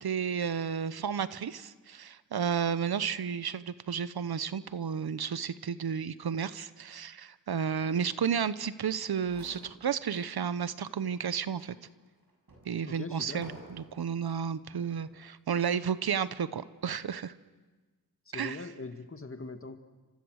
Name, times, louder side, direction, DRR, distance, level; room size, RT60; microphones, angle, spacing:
voice 1, 0.0-11.8 12.7-17.3 18.3-18.6, right 7 dB, 90° right, 15 dB, 0.9 m, -32 dB
sound 1, 9.2-10.4 10.8-10.9 11.6-14.2 14.9-15.3, right 1 dB, 65° right, 6.6 m, -53 dB
voice 2, 12.8-13.4 18.3-19.8, left 3 dB, 35° left, 7 dB, 2.0 m, -41 dB
28.5 x 25.5 x 6.4 m, 1.3 s
wide cardioid pair, 60°, 36 cm